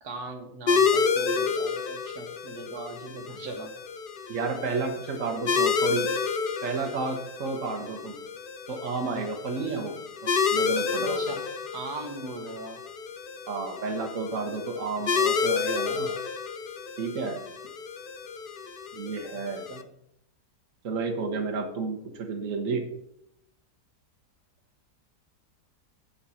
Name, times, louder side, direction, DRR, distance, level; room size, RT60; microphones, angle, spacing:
voice 1, 0.0-3.7 9.1-9.3 11.0-11.5 11.7-12.8 19.7-19.9, right 3 dB, 70° right, 3 dB, 1.9 m, -39 dB
sound 1, 0.7-19.8, left 5 dB, 60° left, 0.5 m, -30 dB
voice 2, 4.3-6.1 6.6-8.2 8.7-10.0 10.2-11.2 13.5-16.2 17.0-17.4 18.9-19.6 20.8-22.9, right 4 dB, 55° right, 3 dB, 1.5 m, -31 dB
7.8 x 7.2 x 5.7 m, 0.77 s
omnidirectional pair, 1.7 m